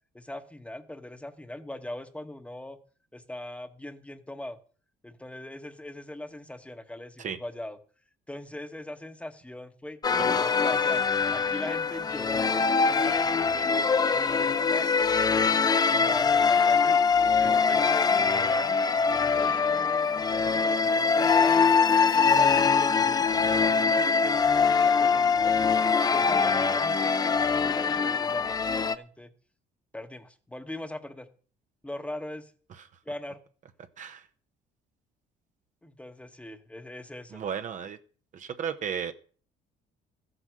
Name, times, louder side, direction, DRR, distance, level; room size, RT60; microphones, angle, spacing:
voice 1, 0.1-2.8 3.1-4.6 5.0-7.8 8.3-13.2 13.5-17.0 17.3-21.6 21.9-24.3 24.8-25.7 26.1-29.3 29.9-31.3 31.8-32.5 33.1-33.4 35.8-37.4, left 1 dB, 5° left, 8 dB, 1.1 m, -40 dB
sound 1, 10.0-29.0, left 5 dB, 25° left, 0.6 m, -23 dB
voice 2, 34.0-34.3 37.3-38.0 38.3-39.1, right 7 dB, 50° right, 9 dB, 0.9 m, -34 dB
13.5 x 8.0 x 6.3 m, 0.43 s
cardioid pair, 110°, 17 cm